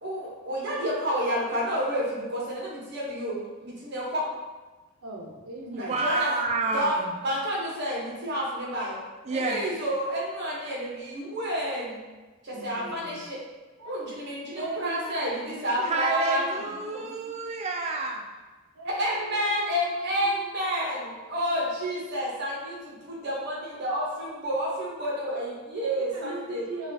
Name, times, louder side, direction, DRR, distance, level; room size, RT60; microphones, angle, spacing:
voice 1, 0.0-4.2 5.8-6.4 6.7-7.0 7.2-9.0 9.3-12.0 12.4-13.4 13.8-16.4 18.9-26.6, equal, 50° right, -5 dB, 0.9 m, -30 dB
voice 2, 5.0-6.0 12.5-13.2 13.8-14.0 14.5-17.3 18.7-21.8 26.1-26.9, right 2 dB, 80° right, 0 dB, 0.6 m, -40 dB
voice 3, 5.9-7.1 9.2-9.7 12.5-13.0 15.8-18.3, right 3 dB, 30° right, 2 dB, 0.3 m, -29 dB
4.0 x 2.3 x 2.6 m, 1.2 s
head